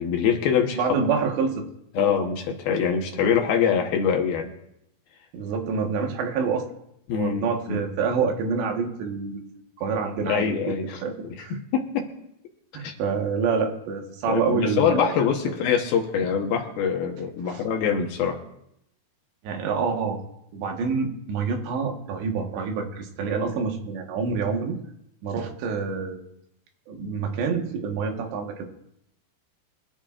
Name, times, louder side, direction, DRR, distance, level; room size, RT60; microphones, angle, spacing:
voice 1, 0.0-0.8 2.0-4.5 7.1-7.8 10.2-12.1 12.8-12.9 14.3-18.4, left 7 dB, 70° left, 2 dB, 2.8 m, -24 dB
voice 2, 0.7-1.6 2.0-2.1 5.3-6.7 7.1-9.4 9.8-10.8 11.0-11.1 11.4-11.6 12.7-15.2 17.5-17.7 19.4-20.2 20.5-24.8 25.2-26.2 26.9-28.7, right 5 dB, 85° right, 3 dB, 3.7 m, -27 dB
24.5 x 11.5 x 2.5 m, 0.79 s
omnidirectional pair, 4.9 m